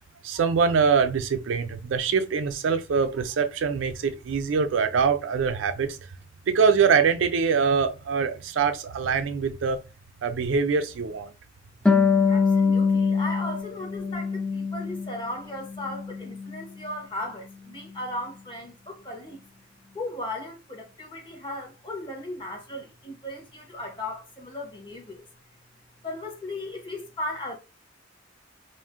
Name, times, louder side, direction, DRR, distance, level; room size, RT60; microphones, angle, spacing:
voice 1, 0.2-6.0 6.5-9.8 10.2-11.3, right 5 dB, 75° right, 0.4 m, -23 dB
Harp, 11.8-15.2 15.6-16.7, left 5 dB, 5° left, 0.3 m, -24 dB
voice 2, 12.3-19.4 19.9-25.2 26.0-27.5, left 1 dB, 25° left, 0.9 m, -36 dB
2.5 x 2.0 x 3.5 m
head